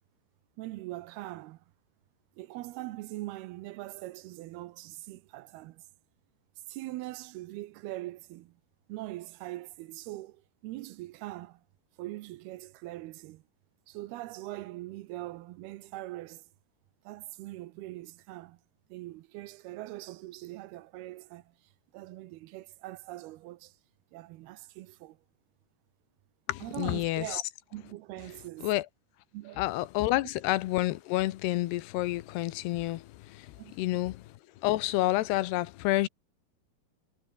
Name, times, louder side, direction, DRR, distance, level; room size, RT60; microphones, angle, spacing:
voice 1, 0.6-1.6 2.4-5.8 6.7-8.5 8.9-11.6 12.0-13.4 13.9-16.4 17.0-18.6 18.9-21.4 21.9-23.7 24.1-25.2 26.6-27.4 27.7-28.7 29.3-29.6 33.6-34.0, right 17 dB, 80° right, 2.7 m, -42 dB
voice 2, 26.5-27.4 28.6-28.9 29.6-34.2 34.6-36.1, left 17 dB, 85° left, 3.0 m, -29 dB
omnidirectional pair, 4.7 m